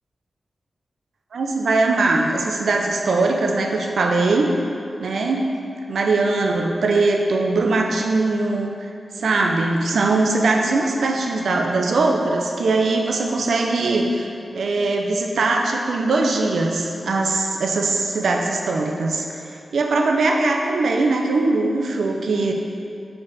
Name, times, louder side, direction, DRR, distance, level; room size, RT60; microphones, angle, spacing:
voice 1, 1.3-4.5 5.0-5.5 5.9-8.9 9.2-14.3 14.5-22.5, right 3 dB, 85° right, 1 dB, 0.6 m, -21 dB
5.0 x 4.7 x 4.2 m, 2.5 s
wide cardioid pair, 155°, 0 cm